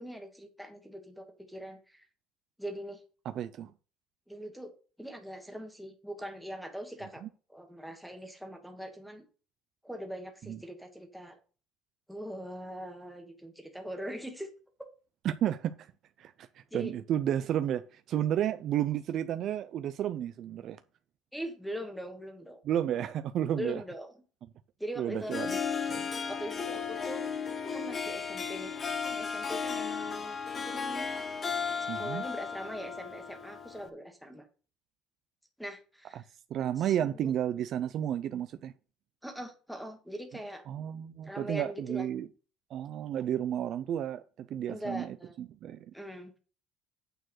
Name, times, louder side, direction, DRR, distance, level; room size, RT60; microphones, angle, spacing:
voice 1, 0.0-2.0 2.6-3.0 4.3-4.7 5.0-7.2 7.5-9.2 9.8-11.4 12.1-14.5 14.8-14.9 16.7-16.9 21.3-22.6 23.5-24.1 24.8-25.4 26.3-27.3 27.7-28.7 29.0-31.1 31.8-34.4 35.6-36.2 36.8-37.3 39.2-40.6 41.2-42.0 44.7-45.4 45.9-46.4, equal, ahead, 1.5 m, -41 dB
voice 2, 3.3-3.7 7.2-7.3 10.5-10.6 15.2-15.9 16.2-20.8 22.6-23.8 25.0-25.6 25.9-26.1 31.9-32.2 36.1-36.2 36.5-38.7 40.7-42.3 42.7-45.9, right 10 dB, 45° right, 0.4 m, -32 dB
Harp, 25.1-33.9, left 6 dB, 25° left, 0.7 m, -35 dB
8.9 x 4.5 x 6.3 m
cardioid pair, 170°, 0 cm